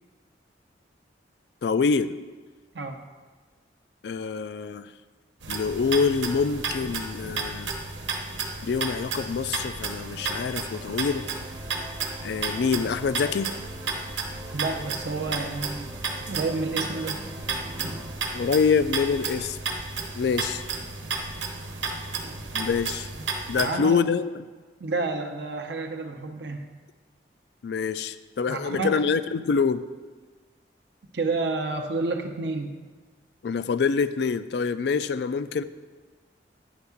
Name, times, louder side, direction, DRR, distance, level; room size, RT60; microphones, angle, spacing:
voice 1, 1.6-2.2 4.0-4.9 5.5-7.7 8.6-11.3 12.2-13.5 18.3-19.6 20.1-20.6 22.5-23.1 23.5-24.4 27.6-29.9 33.4-35.6, left 5 dB, 65° left, 14 dB, 0.3 m, -25 dB
sound 1, 5.4-23.7, right 4 dB, 90° right, 1.1 m, -33 dB
sound 2, 9.8-18.2, right 1 dB, 15° right, 0.7 m, -45 dB
voice 2, 14.5-15.9 16.3-17.2 23.5-24.0 24.8-26.7 28.5-28.9 31.1-32.7, right 3 dB, 70° right, 4 dB, 0.7 m, -29 dB
9.6 x 3.6 x 7.0 m, 1.4 s
head